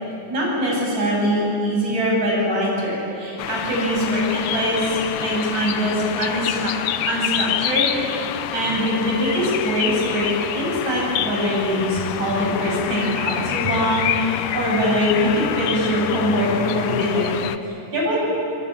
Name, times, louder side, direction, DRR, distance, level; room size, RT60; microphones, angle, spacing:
voice 1, 0.3-6.7 7.1-17.3 17.9-18.2, equal, 55° right, -4 dB, 9.4 m, -23 dB
sound 1, 3.4-17.6, left 11 dB, 75° left, 2.2 m, -27 dB
24.0 x 23.0 x 9.9 m, 2.9 s
omnidirectional pair, 3.8 m